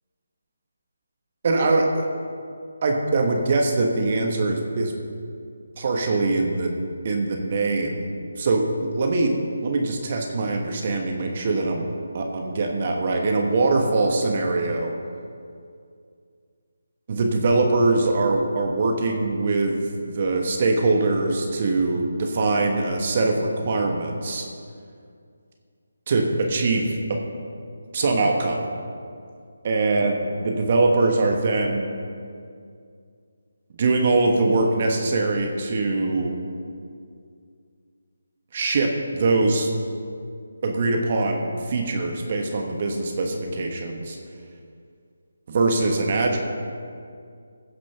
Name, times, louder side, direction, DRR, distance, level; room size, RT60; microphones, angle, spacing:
voice 1, 1.4-2.1 2.8-4.9 5.8-6.7 7.0-8.1 8.4-9.3 9.6-11.8 12.1-14.9 17.1-24.5 26.1-27.2 27.9-28.6 29.6-31.9 33.8-36.4 38.5-39.7 40.6-44.2 45.5-46.4, right 3 dB, 40° right, 2 dB, 1.3 m, -22 dB
15.5 x 6.0 x 5.8 m, 2.3 s
figure-of-eight pair, 155°, 0 cm